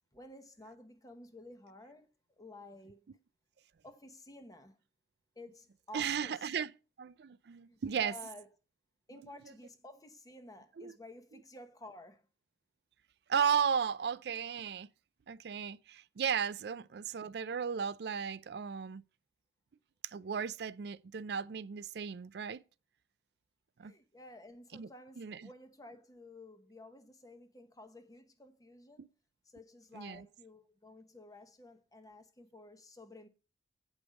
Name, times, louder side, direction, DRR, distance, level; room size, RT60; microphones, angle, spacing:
voice 1, 0.1-2.1 2.4-3.1 3.8-4.8 5.3-6.5 7.7-8.5 9.1-12.3 23.8-29.1 29.4-33.3, left 1 dB, 20° left, 1.0 m, -53 dB
voice 2, 5.9-6.7 7.0-8.1 10.8-10.9 13.3-14.9 15.3-19.0 20.0-22.6 23.8-23.9 24.7-24.9 25.2-25.4 29.0-29.1 29.9-30.2, right 7 dB, 60° right, 0.4 m, -35 dB
8.2 x 5.2 x 6.3 m
head